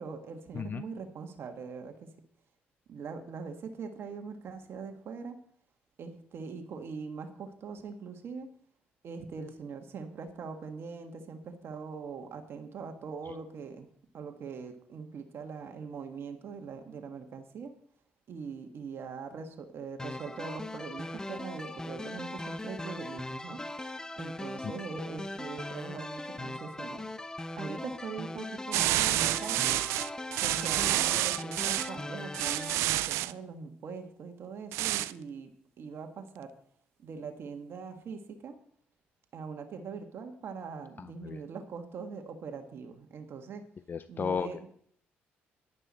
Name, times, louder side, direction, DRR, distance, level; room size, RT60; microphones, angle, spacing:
voice 1, 0.0-2.1 2.9-5.4 6.0-8.5 9.0-13.9 14.1-17.7 18.3-23.6 24.2-27.0 27.5-29.8 30.4-36.5 37.0-38.6 39.3-43.6 44.1-44.6, right 5 dB, 60° right, 5 dB, 1.6 m, -42 dB
sound 1, 20.0-32.8, left 1 dB, 15° left, 0.8 m, -39 dB
sound 2, 28.7-31.9 32.3-33.3 34.7-35.1, right 16 dB, 80° right, 0.4 m, -29 dB
voice 2, 41.0-41.4 43.9-44.7, left 6 dB, 45° left, 13 dB, 0.5 m, -35 dB
11.0 x 11.0 x 4.3 m, 0.63 s
supercardioid pair, 60°, 5 cm